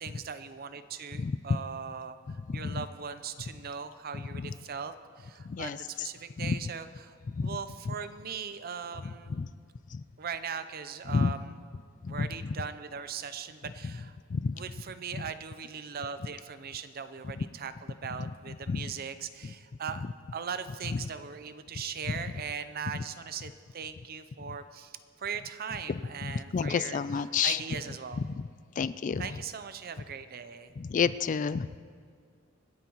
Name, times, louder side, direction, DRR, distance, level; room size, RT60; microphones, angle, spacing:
voice 1, 0.0-9.4 10.2-11.5 12.1-14.2 14.5-20.1 20.3-27.0 27.4-28.2 29.2-30.7, right 6 dB, 50° right, 11 dB, 0.6 m, -39 dB
voice 2, 1.2-1.6 2.5-2.8 4.1-4.5 5.4-5.8 6.4-6.6 7.3-7.5 7.9-8.0 9.3-9.5 9.9-10.0 11.1-11.3 12.0-12.5 14.3-14.6 15.2-15.3 17.4-17.5 18.5-18.9 20.9-21.0 22.1-22.2 22.9-23.0 24.4-24.5 25.9-27.6 28.2-28.3 28.8-29.3 30.8-31.7, left 5 dB, 40° left, 15 dB, 0.3 m, -30 dB
26.0 x 9.2 x 3.0 m, 2.1 s
head